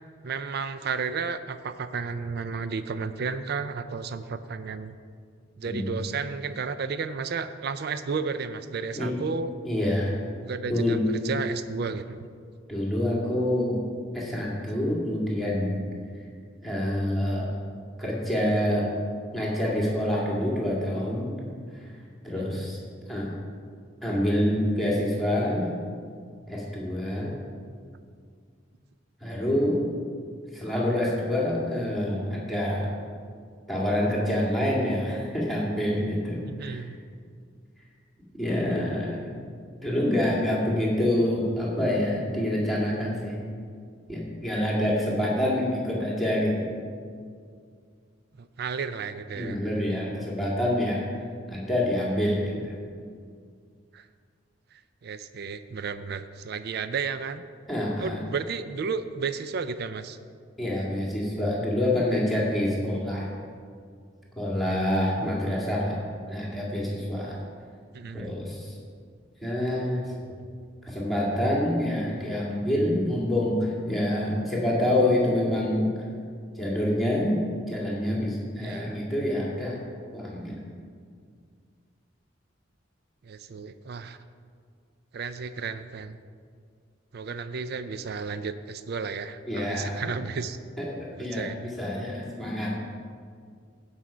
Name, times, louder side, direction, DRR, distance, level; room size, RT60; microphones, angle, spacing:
voice 1, 0.2-5.0 5.6-9.5 10.4-11.0 11.2-12.3 22.4-22.7 36.4-37.0 48.4-49.6 53.9-54.1 55.0-57.4 58.0-60.2 67.9-68.3 70.3-70.5 78.6-79.0 83.2-84.2 85.1-86.2 87.1-90.6 91.3-91.7, right 5 dB, 55° right, 11 dB, 0.4 m, -33 dB
voice 2, 5.6-6.0 9.0-9.1 9.6-10.1 10.7-11.0 12.7-13.8 14.1-15.8 16.6-17.5 18.0-18.9 19.3-21.5 21.7-21.9 22.2-22.8 23.1-23.3 24.0-25.7 26.5-27.4 29.2-29.8 30.5-32.9 33.7-36.9 38.4-39.2 39.8-43.4 44.1-46.8 49.4-51.1 51.5-52.7 57.7-58.2 60.6-63.3 64.4-67.4 68.1-68.7 69.4-70.1 70.8-75.9 76.6-77.4 77.7-79.8 80.1-80.6 89.5-90.1 90.8-92.8, left 1 dB, ahead, -6 dB, 2.1 m, -27 dB
15.5 x 5.7 x 5.0 m, 2.1 s
head